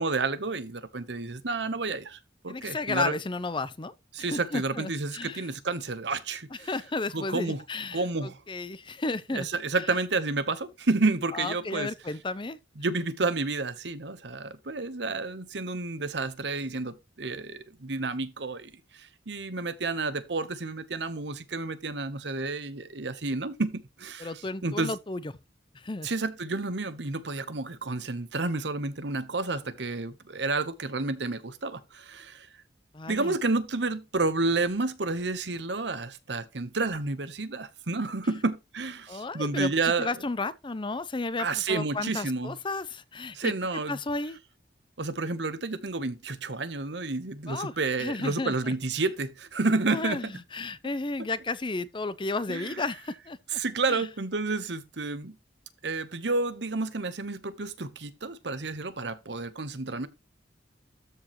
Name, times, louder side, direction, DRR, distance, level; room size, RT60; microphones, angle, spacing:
voice 1, 0.0-2.2 2.4-3.1 4.1-6.7 7.1-7.6 7.9-8.4 9.3-11.9 12.8-24.9 26.0-32.5 33.1-40.1 41.4-42.6 43.3-44.0 45.0-50.3 52.5-52.7 53.5-55.3 55.8-60.1, right 3 dB, 65° right, 1.1 m, -30 dB
voice 2, 2.5-5.5 6.6-9.5 11.3-12.6 24.2-25.3 25.7-26.1 32.9-33.3 39.1-43.5 43.9-44.4 47.5-47.7 48.0-48.7 49.9-53.6 53.9-54.0, left 3 dB, 25° left, 0.6 m, -33 dB
13.5 x 4.7 x 3.1 m
head